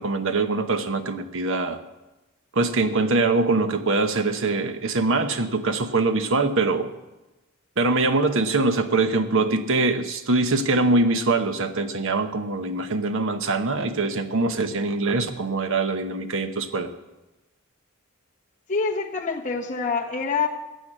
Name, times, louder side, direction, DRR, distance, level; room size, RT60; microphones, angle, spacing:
voice 1, 0.0-1.8 2.5-6.9 7.8-16.9, right 3 dB, 60° right, 9 dB, 1.0 m, -23 dB
voice 2, 18.7-20.5, left 5 dB, 35° left, 1 dB, 1.3 m, -26 dB
14.5 x 8.4 x 7.4 m, 1.1 s
head